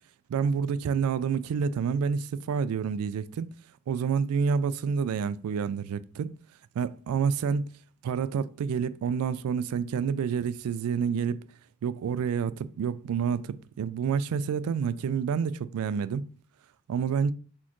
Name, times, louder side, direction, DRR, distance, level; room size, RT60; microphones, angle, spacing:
voice 1, 0.3-3.5 3.9-6.3 6.8-7.6 8.0-11.5 11.8-16.2 16.9-17.3, right 6 dB, 75° right, 0.3 m, -28 dB
4.2 x 3.5 x 3.0 m
head